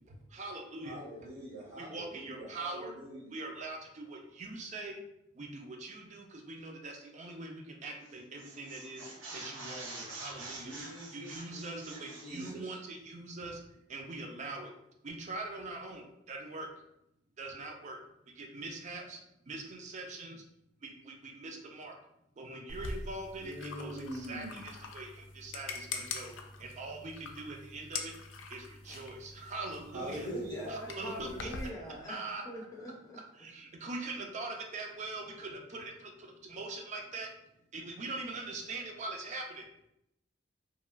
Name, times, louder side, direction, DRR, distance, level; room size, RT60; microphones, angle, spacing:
voice 1, 0.1-1.0 1.8-2.9 3.3-5.0 5.3-10.7 11.1-13.6 13.9-14.7 15.0-16.7 17.4-18.0 18.3-20.4 20.8-22.0 22.4-26.3 26.6-28.1 28.5-30.3 30.7-31.5 32.1-32.4 33.4-37.3 37.7-39.7, right 2 dB, 40° right, 2 dB, 0.4 m, -42 dB
voice 2, 0.8-3.3 10.6-12.8 23.4-24.6 29.9-30.7, right 1 dB, 60° right, -6 dB, 1.2 m, -44 dB
sound 1, 7.8-8.1 8.4-12.6, right 2 dB, 80° right, 0.7 m, -46 dB
sound 2, 22.7-31.7, left 4 dB, 85° left, 0.3 m, -44 dB
voice 3, 30.2-33.2, left 1 dB, 20° left, -2 dB, 0.5 m, -43 dB
2.9 x 2.2 x 2.3 m, 0.81 s
head